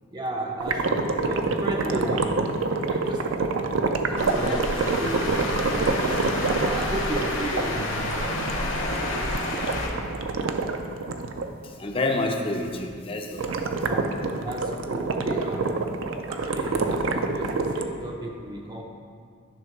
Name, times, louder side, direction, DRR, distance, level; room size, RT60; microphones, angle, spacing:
voice 1, 0.1-2.6 2.9-8.4 13.8-15.9 16.3-18.8, right 1 dB, 20° right, 0 dB, 0.5 m, -34 dB
sound 1, 0.6-11.5 13.4-17.8, right 3 dB, 65° right, 0.5 m, -27 dB
voice 2, 4.1-4.6 11.6-13.9, left 2 dB, 25° left, 3 dB, 0.6 m, -30 dB
sound 2, 4.2-9.9, left 1 dB, 65° left, 1.6 m, -29 dB
10.5 x 3.6 x 5.9 m, 2.2 s
head